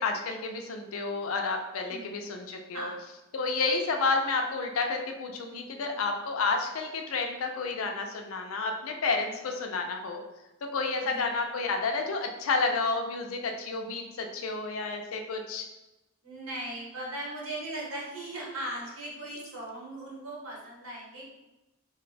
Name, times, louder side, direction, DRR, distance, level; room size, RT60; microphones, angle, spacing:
voice 1, 0.0-2.9 3.3-10.2 10.6-15.7, left 3 dB, 75° left, 4 dB, 0.4 m, -30 dB
voice 2, 5.5-5.9 11.1-11.2 16.2-21.2, right 1 dB, 80° right, -4 dB, 1.0 m, -38 dB
2.6 x 2.2 x 4.0 m, 0.99 s
head